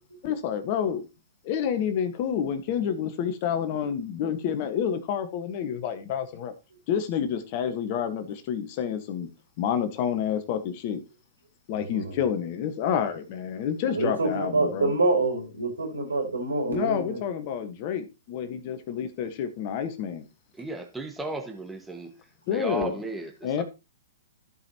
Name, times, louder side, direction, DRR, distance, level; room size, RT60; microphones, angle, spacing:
voice 1, 0.2-1.0 1.4-6.5 6.9-9.3 9.6-11.0 11.7-14.9 16.7-20.2 22.5-22.9 23.4-23.6, left 8 dB, 45° left, 1.5 m, -29 dB
voice 2, 11.7-12.2 13.9-17.2, right 3 dB, 85° right, 4.7 m, -26 dB
voice 3, 20.6-22.2 22.5-23.6, right 2 dB, 5° right, 1.6 m, -35 dB
15.5 x 5.5 x 2.9 m
hypercardioid pair, 120°, 0 cm